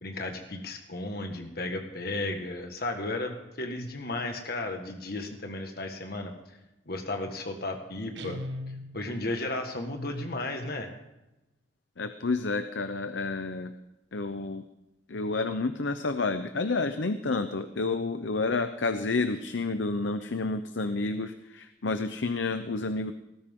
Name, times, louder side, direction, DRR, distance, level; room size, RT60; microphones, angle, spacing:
voice 1, 0.0-6.3 6.9-8.4 8.9-10.9, left 2 dB, 55° left, 4 dB, 1.7 m, -34 dB
Guitar, 8.1-9.4, left 1 dB, 70° right, 1.4 m, -39 dB
voice 2, 12.0-13.7 14.1-14.6 15.1-23.1, left 3 dB, 75° left, 10 dB, 0.8 m, -30 dB
18.5 x 14.5 x 3.8 m, 0.95 s
head